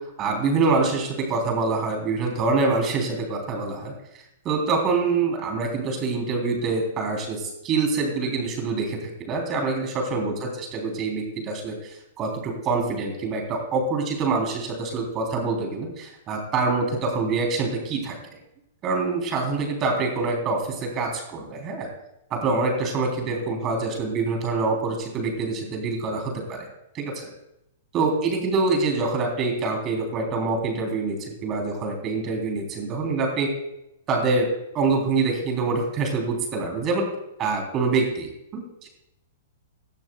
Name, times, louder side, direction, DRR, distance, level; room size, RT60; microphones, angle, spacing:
voice 1, 0.2-3.9 4.5-18.2 18.8-21.9 22.3-26.7 26.9-27.3 27.9-33.5 34.1-34.5 34.7-37.1 37.4-38.9, right 3 dB, 30° right, 2 dB, 3.6 m, -25 dB
17.5 x 12.0 x 2.4 m, 0.86 s
hypercardioid pair, 110°, 0 cm